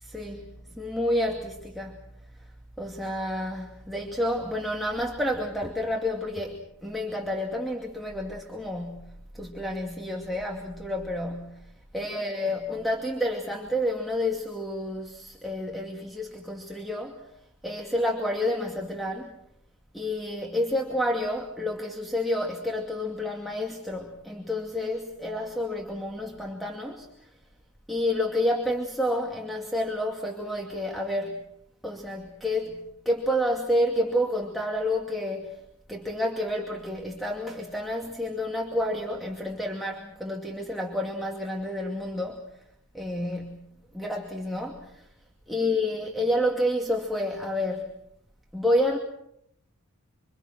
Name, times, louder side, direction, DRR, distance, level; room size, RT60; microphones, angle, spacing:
voice 1, 0.1-2.0 2.8-17.2 17.6-19.4 19.9-27.3 27.9-31.5 31.8-35.6 35.9-42.4 42.9-45.1 45.5-47.9 48.5-49.0, left 1 dB, ahead, 2.4 m, -29 dB
27.0 x 26.0 x 6.3 m
head